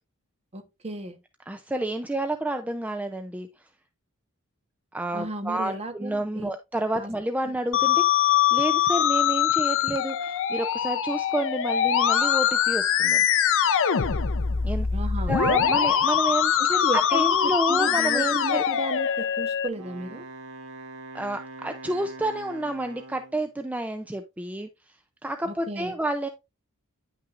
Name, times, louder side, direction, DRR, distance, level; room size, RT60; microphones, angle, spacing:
voice 1, 0.5-1.2 5.1-6.5 6.9-7.1 14.9-15.4 16.6-20.2 25.5-25.9, right 1 dB, 30° right, 1.1 m, -34 dB
voice 2, 1.5-3.5 4.9-13.2 14.6-14.9 15.3-18.6 21.1-24.7 25.2-26.3, right 1 dB, 5° right, 0.4 m, -30 dB
Musical instrument, 7.7-19.7, left 9 dB, 60° left, 0.6 m, -23 dB
Wind instrument woodwind instrument, 19.7-23.5, right 2 dB, 90° right, 1.1 m, -43 dB
9.7 x 5.7 x 2.5 m
head